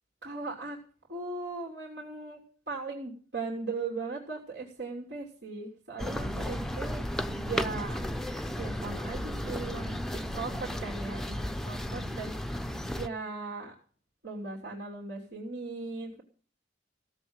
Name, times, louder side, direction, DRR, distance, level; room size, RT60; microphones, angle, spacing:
voice 1, 0.2-0.8 1.1-2.4 2.7-7.0 7.5-8.1 8.6-12.3 12.9-13.7 14.2-16.2, right 3 dB, 70° right, -3 dB, 3.2 m, -38 dB
sound 1, 6.0-13.1, equal, ahead, 0.6 m, -34 dB
16.5 x 7.3 x 9.0 m, 0.42 s
head